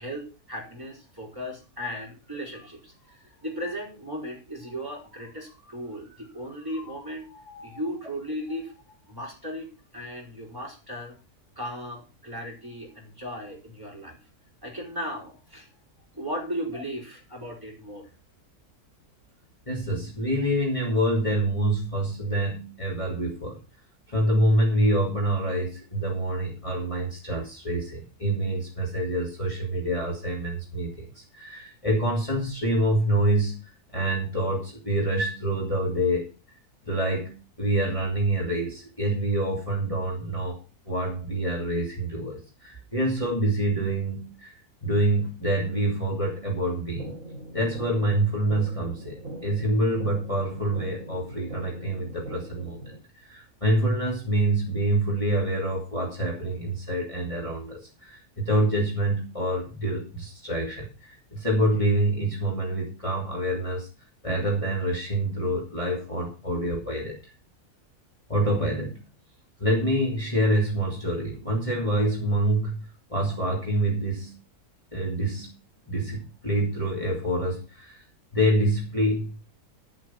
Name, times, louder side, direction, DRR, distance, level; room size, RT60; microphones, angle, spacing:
voice 1, 0.0-11.2 11.5-14.2 14.6-15.7 16.1-18.1, equal, 15° right, -1 dB, 4.7 m, -36 dB
voice 2, 19.7-23.6 24.1-33.5 33.9-36.3 36.8-44.5 44.8-47.2 47.5-52.8 53.2-63.9 64.2-67.3 68.3-69.0 69.6-74.3 74.9-75.5 75.9-78.0 78.3-79.3, right 1 dB, 20° left, -2 dB, 3.2 m, -26 dB
sound 1, 47.0-53.0, right 1 dB, 55° right, 3.0 m, -40 dB
12.0 x 7.8 x 6.0 m, 0.32 s
omnidirectional pair, 1.6 m